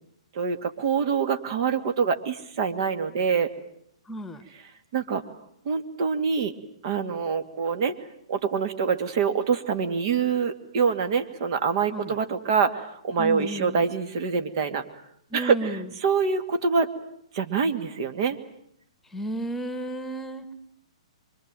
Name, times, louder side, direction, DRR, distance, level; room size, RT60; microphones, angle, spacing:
voice 1, 0.3-3.5 4.5-4.6 4.9-5.2 5.6-6.5 6.8-7.9 8.3-14.8 15.3-16.9 17.3-18.4, right 6 dB, 50° right, 8 dB, 2.7 m, -25 dB
voice 2, 4.1-4.5 11.9-12.2 13.2-13.9 15.3-15.9 19.1-20.5, right 1 dB, 5° left, 12 dB, 1.5 m, -33 dB
26.0 x 24.0 x 9.3 m, 0.72 s
hypercardioid pair, 130°, 3 cm